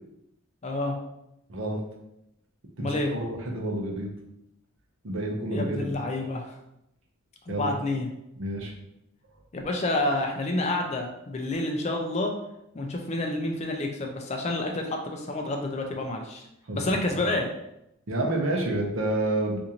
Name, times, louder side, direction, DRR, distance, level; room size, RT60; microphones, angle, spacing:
voice 1, 0.6-1.0 2.8-3.1 5.5-6.6 7.5-8.1 9.5-12.3 12.7-16.4 16.7-17.5, left 2 dB, 30° left, 2 dB, 0.4 m, -29 dB
voice 2, 1.5-1.8 2.8-4.1 5.0-6.0 7.5-7.7 8.4-8.7 16.7-17.0 18.1-19.6, right 1 dB, 65° right, 0 dB, 0.7 m, -29 dB
3.8 x 2.5 x 2.9 m, 0.83 s
head